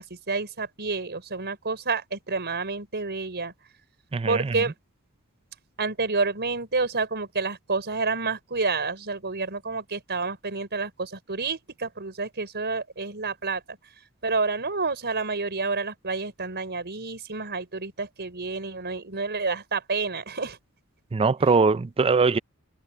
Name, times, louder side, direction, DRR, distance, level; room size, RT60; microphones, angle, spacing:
voice 1, 0.0-3.5 4.3-4.7 5.8-13.8 14.2-20.6, right 4 dB, 50° right, 5.5 m, -29 dB
voice 2, 4.1-4.5 21.1-22.4, right 4 dB, 25° right, 0.4 m, -21 dB
head